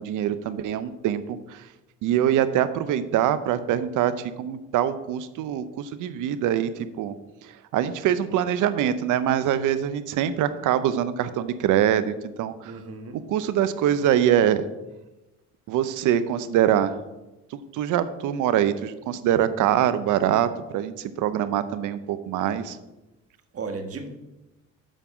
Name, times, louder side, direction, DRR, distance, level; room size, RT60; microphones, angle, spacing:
voice 1, 0.0-1.6 2.0-7.2 7.4-12.7 13.3-14.6 15.7-17.0 17.5-22.8, right 10 dB, 85° right, 13 dB, 0.7 m, -24 dB
voice 2, 12.6-13.2 23.5-24.1, right 4 dB, 50° right, 6 dB, 1.4 m, -34 dB
7.3 x 5.4 x 7.0 m, 1.0 s
cardioid pair, 90°, 30 cm